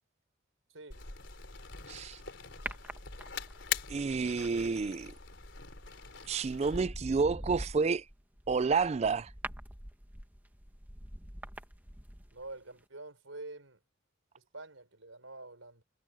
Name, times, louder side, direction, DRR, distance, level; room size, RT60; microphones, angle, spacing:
voice 1, 0.7-1.1 12.3-13.8 14.4-15.8, right 2 dB, 85° right, 5.3 m, -47 dB
sound 1, 0.9-6.8, left 7 dB, 60° left, 4.4 m, -42 dB
voice 2, 1.9-2.2 3.9-5.1 6.3-8.0 8.5-9.3, right 4 dB, 35° right, 0.3 m, -30 dB
sound 2, 2.7-3.7 5.6-5.8 6.3-12.5 12.8-12.9, right 1 dB, 10° right, 1.6 m, -44 dB
head